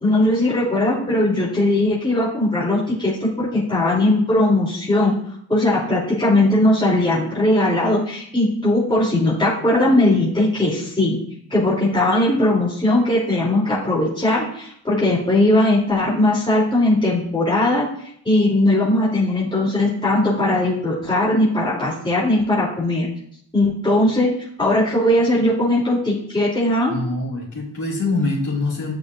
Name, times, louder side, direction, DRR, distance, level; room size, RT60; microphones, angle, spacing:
voice 1, 0.0-5.1 5.5-11.2 11.5-17.9 18.2-23.1 23.5-24.3 24.6-26.9, left 1 dB, 10° left, -7 dB, 2.9 m, -19 dB
voice 2, 26.9-28.9, left 2 dB, 40° left, -6 dB, 3.5 m, -24 dB
8.9 x 8.3 x 2.5 m, 0.68 s
supercardioid pair, 65°, 44 cm